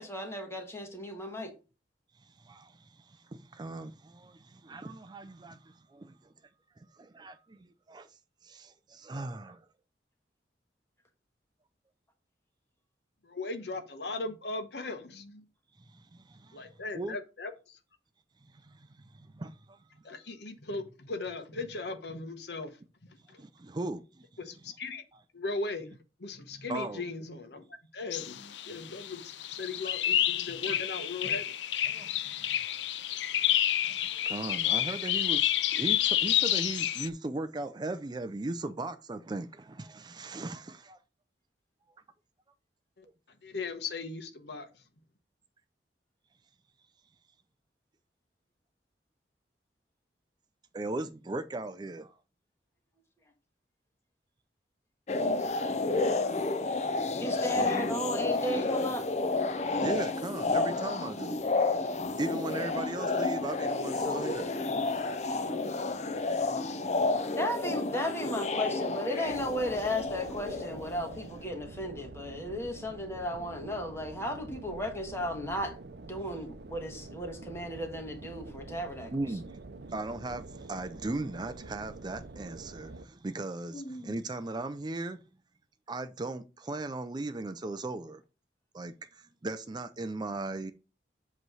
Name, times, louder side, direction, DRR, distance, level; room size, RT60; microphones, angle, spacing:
voice 1, 0.0-1.5 55.4-55.5 57.2-59.1 67.3-75.7 76.1-79.1 83.7-84.2, equal, 15° left, 1.4 m, -35 dB
voice 2, 2.4-6.2 6.9-8.1 8.4-9.6 15.9-17.2 18.4-19.8 23.4-24.2 26.7-27.0 29.8-29.9 31.9-32.7 33.8-41.0 50.7-52.1 57.6-57.9 59.6-61.4 62.2-64.5 64.9-66.4 79.1-79.5 79.9-85.2 85.9-88.2 88.7-90.7, right 2 dB, 25° right, 0.4 m, -38 dB
voice 3, 13.2-15.4 16.5-17.8 20.0-22.7 23.3-23.4 24.4-25.0 25.3-27.6 27.9-31.5 43.0-43.1 43.4-44.7, left 3 dB, 70° left, 1.1 m, -38 dB
sound 1, 28.1-37.1, left 12 dB, 85° left, 0.5 m, -29 dB
sound 2, 55.1-71.3, left 3 dB, 40° left, 0.6 m, -31 dB
sound 3, 69.2-83.0, right 3 dB, 65° right, 0.7 m, -47 dB
7.9 x 3.2 x 6.1 m
head